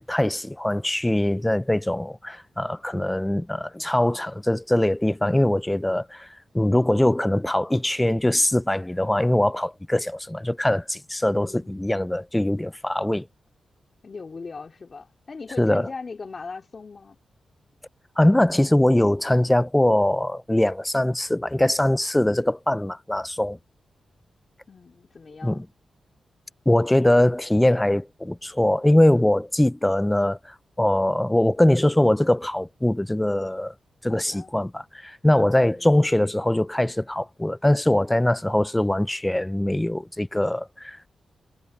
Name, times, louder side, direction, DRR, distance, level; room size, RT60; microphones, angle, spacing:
voice 1, 0.1-6.3 6.5-13.3 15.6-15.9 18.2-23.6 25.4-25.7 26.7-33.7 34.0-41.1, left 1 dB, 10° left, 0.5 m, -22 dB
voice 2, 11.3-11.8 14.0-17.2 24.7-25.6 34.1-34.5 35.7-35.9, left 4 dB, 45° left, 3.0 m, -39 dB
cardioid pair, 90°, 0 cm